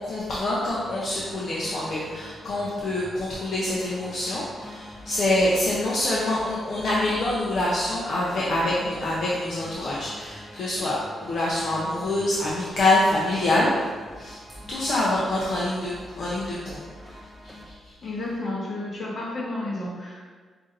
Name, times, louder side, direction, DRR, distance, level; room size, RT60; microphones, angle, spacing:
voice 1, 0.0-13.7 14.1-14.4 14.7-17.9, left 1 dB, 60° left, -6 dB, 0.6 m, -26 dB
sound 1, 0.7-17.7, equal, ahead, 0.5 m, -45 dB
voice 2, 18.0-20.3, left 2 dB, 45° left, -4 dB, 1.1 m, -31 dB
5.5 x 2.6 x 2.6 m, 1.5 s
cardioid pair, 95°, 0 cm